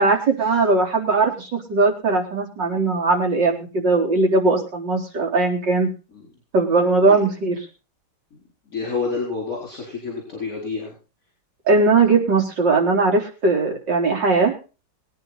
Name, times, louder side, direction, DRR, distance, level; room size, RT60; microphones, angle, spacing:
voice 1, 0.0-5.9 6.5-7.6 11.7-14.5, right 3 dB, 80° right, 1 dB, 4.6 m, -19 dB
voice 2, 8.7-10.9, left 4 dB, 45° left, -2 dB, 5.1 m, -29 dB
21.5 x 9.7 x 4.1 m, 0.34 s
omnidirectional pair, 1.9 m